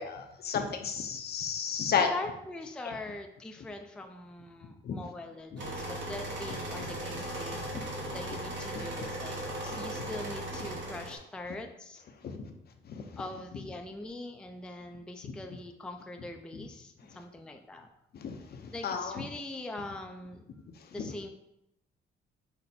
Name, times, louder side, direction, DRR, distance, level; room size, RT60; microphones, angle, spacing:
voice 1, 0.0-2.1 2.8-2.9 4.8-5.0 5.5-5.6 7.7-7.8 9.7-9.8 12.2-12.5 12.9-13.2 15.2-15.3 16.5-16.6 18.1-19.2 21.0-21.1, left 6 dB, 55° left, 5 dB, 0.6 m, -33 dB
voice 2, 1.9-12.4 13.2-17.9 18.7-20.5 20.9-21.3, left 2 dB, 5° left, 4 dB, 0.4 m, -42 dB
sound 1, 5.6-11.2, right 1 dB, 70° right, 1.3 m, -37 dB
5.6 x 2.1 x 4.0 m, 0.84 s
cardioid pair, 90°, 20 cm